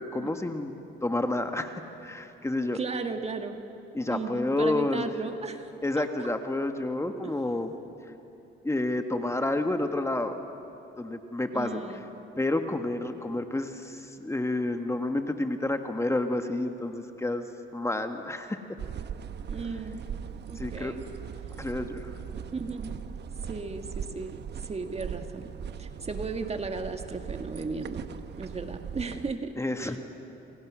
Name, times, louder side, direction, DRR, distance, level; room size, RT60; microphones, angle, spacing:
voice 1, 0.0-2.8 3.9-5.1 5.8-7.7 8.6-10.4 11.0-11.8 12.4-17.5 17.7-18.8 20.5-20.9 21.6-22.1 29.6-30.0, left 2 dB, 15° left, 6 dB, 1.6 m, -30 dB
voice 2, 2.7-3.6 4.1-5.7 6.0-6.1 7.2-7.3 11.5-12.1 19.5-20.1 20.5-21.0 22.5-23.0 23.4-25.5 25.8-28.0 28.4-29.5 29.8-30.0, right 4 dB, 30° right, 6 dB, 1.9 m, -35 dB
sound 1, 18.8-29.3, right 8 dB, 60° right, 1.1 m, -39 dB
29.0 x 26.5 x 6.3 m, 2.9 s
cardioid pair, 90°, 20 cm